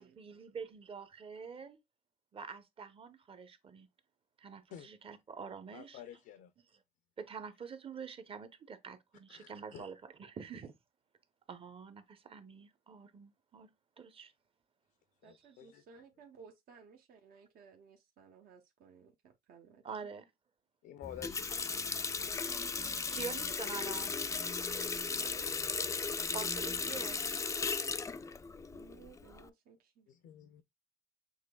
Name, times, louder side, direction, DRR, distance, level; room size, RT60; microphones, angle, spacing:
voice 1, 0.0-1.8 2.3-3.9 4.4-6.0 7.2-10.7 11.5-13.7 14.0-14.3 19.8-20.3 23.1-24.1 26.3-27.2, right 6 dB, 35° right, 0.8 m, -46 dB
voice 2, 5.7-6.5 9.3-9.9 15.2-15.8 20.8-22.3 30.1-30.6, left 10 dB, 75° left, 0.6 m, -51 dB
voice 3, 15.2-20.1 28.7-30.1, right 5 dB, 60° right, 0.8 m, -59 dB
Water tap faucet, 21.0-29.5, left 4 dB, 20° left, 0.4 m, -36 dB
6.5 x 3.0 x 2.2 m
cardioid pair, 110°, 17 cm